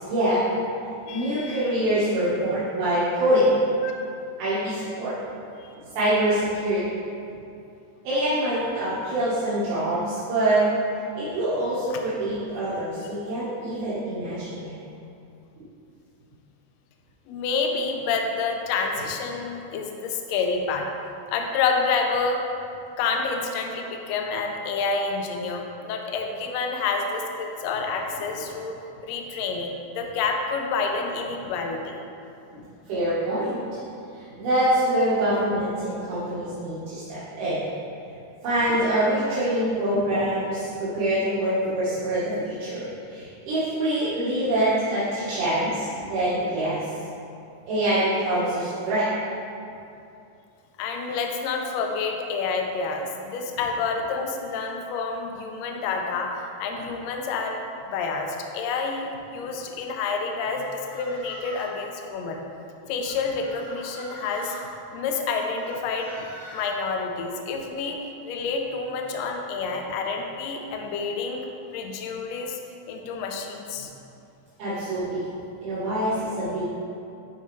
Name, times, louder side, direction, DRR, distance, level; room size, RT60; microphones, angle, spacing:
voice 1, 0.1-0.4 1.1-3.6 4.4-5.2 6.0-6.8 8.0-10.7 11.2-14.7 32.9-33.6 34.1-37.6 38.4-46.8 47.7-49.1 74.6-75.3 75.6-76.7, right 1 dB, 90° right, -12 dB, 2.8 m, -25 dB
voice 2, 1.0-1.7 3.8-3.9 5.6-5.7 17.3-20.9 21.3-22.4 23.0-28.7 29.0-32.0 50.8-62.4 62.9-64.5 64.9-66.1 66.5-68.0 68.2-72.6 72.9-73.9, left 4 dB, 80° left, 2 dB, 1.5 m, -28 dB
sound 1, 60.5-61.8 63.0-64.7 65.6-66.7, equal, 55° left, 1.7 m, -43 dB
10.5 x 4.1 x 3.1 m, 2.6 s
omnidirectional pair, 3.6 m